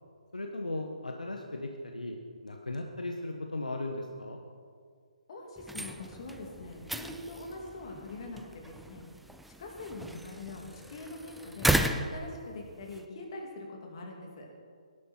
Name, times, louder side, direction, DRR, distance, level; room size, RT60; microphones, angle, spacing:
voice 1, 0.3-4.4, left 2 dB, 80° left, 3 dB, 1.2 m, -37 dB
voice 2, 5.3-9.0 9.6-11.7 12.1-14.5, left 2 dB, 45° left, 0 dB, 2.8 m, -43 dB
sound 1, 5.6-13.1, right 1 dB, ahead, 0.4 m, -35 dB
17.0 x 11.5 x 4.5 m, 2.1 s
figure-of-eight pair, 140°, 4 cm